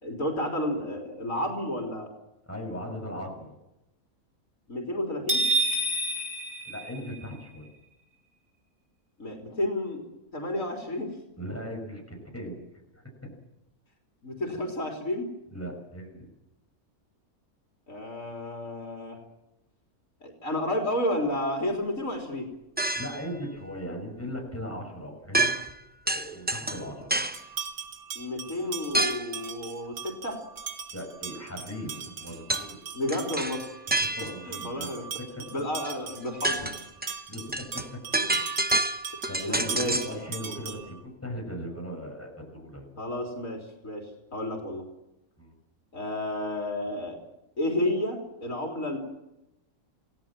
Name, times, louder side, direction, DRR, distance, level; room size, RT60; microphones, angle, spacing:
voice 1, 0.0-2.1 4.7-5.4 9.2-10.1 10.3-11.2 14.2-15.3 17.9-19.2 20.2-22.5 28.2-30.4 32.9-33.6 34.4-35.0 35.3-36.6 38.2-38.3 39.4-40.2 43.0-44.8 45.9-47.2 47.6-49.0, left 1 dB, 60° left, 1 dB, 4.0 m, -31 dB
voice 2, 2.5-3.5 6.6-7.7 11.4-12.6 12.9-13.3 15.5-16.3 22.9-25.5 26.0-27.1 30.9-32.8 34.2-34.9 35.2-35.4 36.6-36.7 37.3-38.0 39.3-42.9 45.4-45.5, equal, 10° left, 0 dB, 6.5 m, -38 dB
sound 1, 5.3-7.5, right 1 dB, 55° right, 5.7 m, -28 dB
sound 2, 22.8-23.3 25.3-25.8 26.1-27.4 28.9-29.3 32.5-32.7 33.1-34.5 35.8-35.9 36.3-40.2, right 2 dB, 10° right, 0.6 m, -28 dB
sound 3, 27.3-41.0, right 6 dB, 80° right, 2.1 m, -40 dB
28.5 x 18.0 x 7.5 m, 0.93 s
omnidirectional pair, 1.5 m